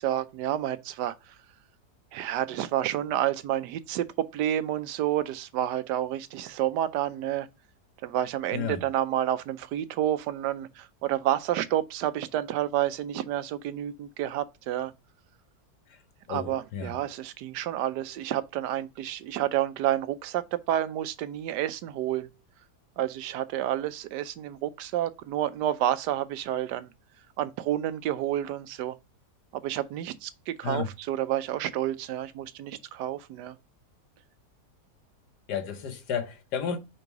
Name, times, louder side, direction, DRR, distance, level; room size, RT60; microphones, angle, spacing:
voice 1, 0.0-1.4 2.1-7.5 8.0-14.9 16.3-22.4 23.0-26.9 27.4-29.0 29.5-33.6, right 12 dB, 90° right, 1.2 m, -29 dB
voice 2, 16.3-16.9 30.6-30.9 35.5-36.8, left 6 dB, 80° left, 1.6 m, -32 dB
5.3 x 3.8 x 4.6 m
omnidirectional pair, 1.8 m